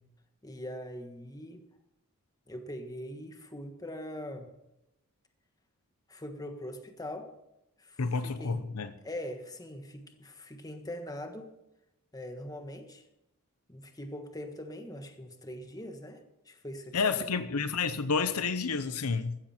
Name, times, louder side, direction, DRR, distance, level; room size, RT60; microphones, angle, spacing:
voice 1, 0.4-1.7 2.5-4.5 6.1-7.3 7.8-8.7 9.0-11.5 12.1-13.0 13.7-17.4, left 1 dB, 15° left, 6 dB, 1.5 m, -42 dB
voice 2, 8.0-8.9 16.9-19.4, left 4 dB, 75° left, 12 dB, 0.8 m, -30 dB
15.0 x 13.5 x 4.4 m, 0.87 s
head